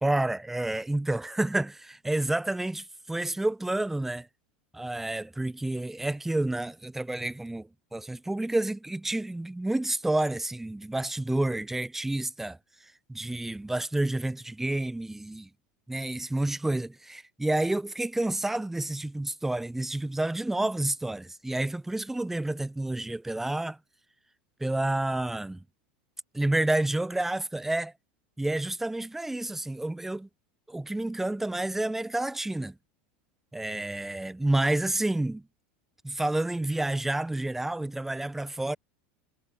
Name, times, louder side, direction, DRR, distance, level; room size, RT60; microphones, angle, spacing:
voice 1, 0.0-4.3 4.7-12.6 13.1-15.5 15.9-23.8 24.6-25.6 26.3-27.9 28.4-30.3 30.7-32.7 33.5-35.4 36.0-38.8, right 2 dB, 5° right, 1.0 m, -29 dB
supercardioid pair, 120°, 5 cm